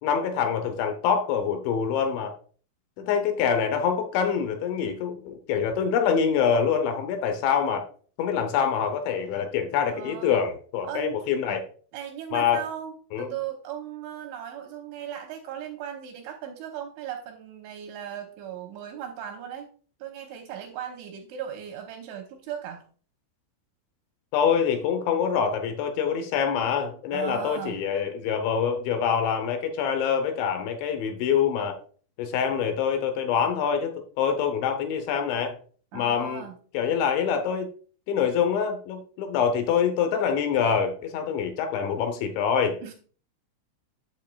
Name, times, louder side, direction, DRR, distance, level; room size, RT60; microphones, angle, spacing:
voice 1, 0.0-2.3 3.0-7.8 8.2-11.6 12.3-12.6 13.1-13.3 24.3-31.8 32.2-35.6 35.9-36.4 36.7-37.7 38.1-42.8, left 7 dB, 75° left, 7 dB, 2.8 m, -25 dB
voice 2, 9.9-10.4 10.8-11.1 11.9-19.7 20.0-22.8 27.1-27.8 35.9-36.6 42.8-42.9, right 9 dB, 80° right, 2 dB, 2.8 m, -37 dB
8.7 x 7.9 x 2.3 m, 0.43 s
omnidirectional pair, 6.0 m